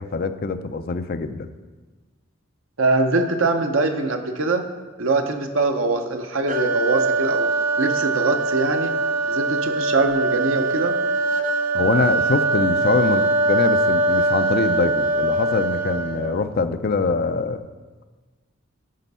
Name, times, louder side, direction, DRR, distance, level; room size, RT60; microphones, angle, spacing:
voice 1, 0.0-1.5 11.7-17.6, left 4 dB, 45° left, 9 dB, 0.5 m, -24 dB
voice 2, 2.8-4.7 5.0-7.5 7.8-8.9 9.2-10.9, right 3 dB, 75° right, 6 dB, 0.8 m, -22 dB
sound 1, 6.5-16.4, right 2 dB, 40° right, 0.7 m, -22 dB
11.5 x 4.5 x 5.4 m, 1.3 s
head